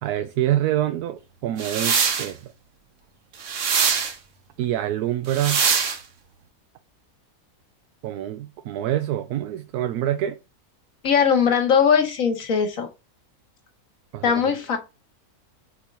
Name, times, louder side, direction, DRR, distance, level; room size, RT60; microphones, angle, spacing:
voice 1, 0.0-2.5 4.6-5.6 8.0-10.4 14.1-14.5, right 12 dB, 85° right, 1.1 m, -26 dB
sound 1, 1.6-2.3 3.4-4.1 5.3-6.0, right 6 dB, 60° right, 1.3 m, -22 dB
voice 2, 11.0-12.9 14.2-14.8, left 7 dB, 65° left, 1.5 m, -20 dB
4.5 x 4.3 x 5.3 m
omnidirectional pair, 1.6 m